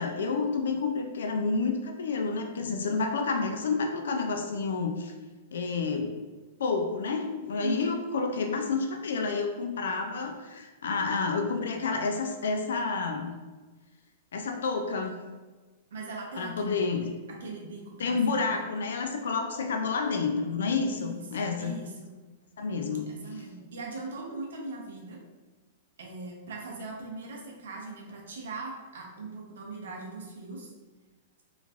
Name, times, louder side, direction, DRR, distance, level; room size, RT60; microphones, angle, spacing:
voice 1, 0.0-5.1 5.5-6.1 6.6-13.3 14.3-15.2 16.4-17.1 18.0-21.7 22.6-23.1, left 4 dB, 85° left, 4 dB, 0.3 m, -29 dB
voice 2, 7.6-8.0 15.9-16.8 17.3-18.6 21.0-22.2 23.1-25.2 26.0-30.7, right 3 dB, 85° right, -1 dB, 0.7 m, -40 dB
3.0 x 2.4 x 2.4 m, 1.3 s
hypercardioid pair, 135°, 0 cm